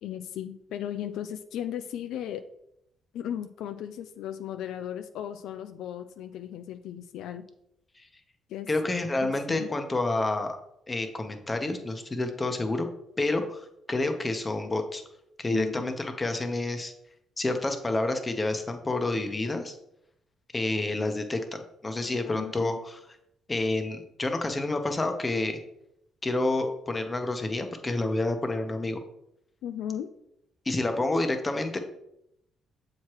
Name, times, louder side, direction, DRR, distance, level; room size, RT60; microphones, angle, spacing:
voice 1, 0.0-2.4 3.1-7.5 8.5-8.7 9.2-9.7 15.5-15.9 22.2-22.8 29.6-30.1, left 10 dB, 85° left, 9 dB, 0.3 m, -36 dB
voice 2, 8.7-10.6 10.9-12.9 13.2-13.6 13.9-15.0 15.4-16.9 17.4-19.8 20.5-23.0 23.5-25.6 26.2-29.0 30.6-31.8, left 2 dB, 25° left, 6 dB, 0.9 m, -29 dB
7.2 x 4.8 x 3.0 m, 0.79 s
cardioid pair, 90°, 0 cm